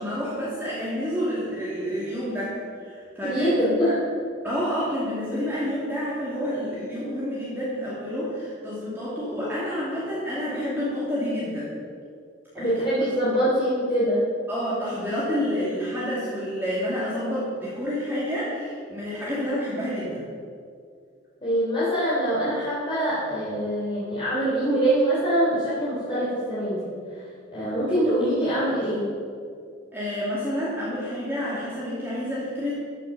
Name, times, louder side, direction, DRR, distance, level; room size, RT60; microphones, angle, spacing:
voice 1, 0.0-3.6 4.4-11.7 12.5-12.7 13.0-13.1 14.5-20.2 29.9-32.8, equal, 10° right, -8 dB, 2.4 m, -29 dB
voice 2, 3.2-4.0 12.6-14.3 21.4-26.9 27.5-29.0, right 1 dB, 30° left, -10 dB, 3.3 m, -24 dB
14.0 x 6.6 x 6.6 m, 2.3 s
head